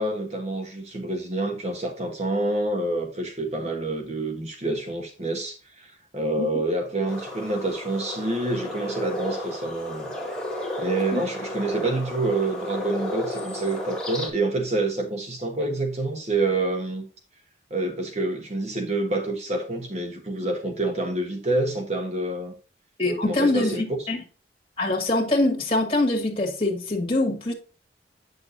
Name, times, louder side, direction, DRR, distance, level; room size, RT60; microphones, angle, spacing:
voice 1, 0.0-10.1 10.8-17.1 17.7-22.5 23.0-23.8, right 2 dB, 35° right, 1.3 m, -27 dB
sound 1, 7.1-14.3, left 1 dB, 5° left, 2.0 m, -33 dB
voice 2, 23.0-24.2 24.8-27.5, left 2 dB, 30° left, 2.1 m, -24 dB
8.5 x 6.6 x 2.7 m
head